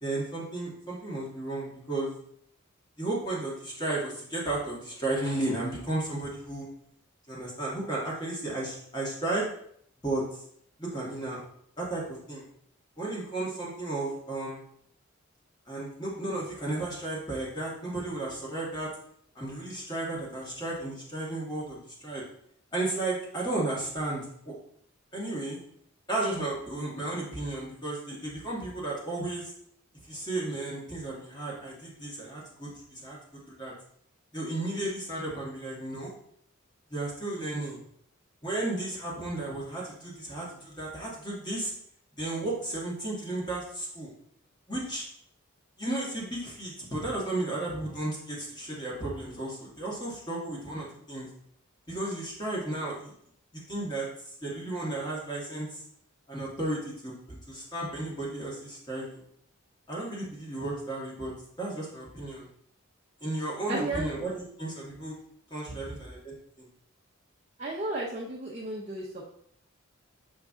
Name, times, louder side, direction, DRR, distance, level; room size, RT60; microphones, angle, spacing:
voice 1, 0.0-2.1 3.0-6.7 7.3-9.5 10.0-10.2 10.8-11.4 11.8-12.4 13.0-14.6 15.7-18.9 19.4-22.2 22.7-24.6 25.1-25.6 26.1-29.5 30.1-33.2 33.5-33.7 34.3-36.1 36.9-37.8 38.4-41.7 42.2-44.1 44.7-45.1 45.8-51.3 51.9-53.1 53.5-54.1 54.4-55.8 56.3-59.2 59.9-61.3 61.6-62.5 63.2-65.2 65.5-66.7, right 2 dB, 20° left, -4 dB, 1.9 m, -34 dB
voice 2, 63.7-64.1 65.7-65.9 67.6-69.3, right 2 dB, 30° right, -5 dB, 0.8 m, -34 dB
7.2 x 3.7 x 3.7 m, 0.68 s
head